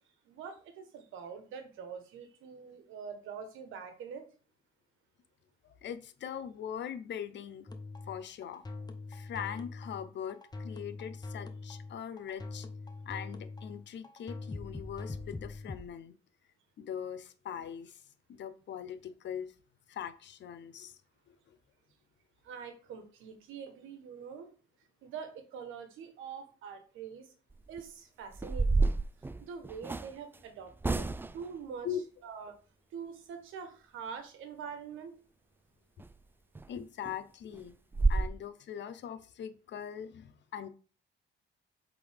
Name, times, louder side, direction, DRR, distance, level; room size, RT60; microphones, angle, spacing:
voice 1, 0.3-4.2 22.4-24.5 25.0-27.3 27.7-29.0 29.4-31.1 31.3-31.9 32.2-32.5 32.9-35.1, right 6 dB, 90° right, 7 dB, 1.3 m, -44 dB
voice 2, 5.8-7.7 8.1-8.6 9.1-12.7 13.1-16.1 16.8-18.0 18.3-19.5 19.9-20.9 21.3-21.4 31.8-32.0 36.7-37.7 38.1-40.7, left 9 dB, 65° left, 12 dB, 0.8 m, -41 dB
sound 1, 7.7-15.9, left 3 dB, 20° left, 0.9 m, -43 dB
sound 2, 27.5-27.8 28.3-30.1 30.8-31.5 36.0-36.1 36.5-36.7 37.1-37.2 37.5-37.6 37.9-38.3, right 3 dB, 10° right, 0.3 m, -29 dB
7.7 x 3.8 x 3.5 m, 0.38 s
cardioid pair, 90°, 20 cm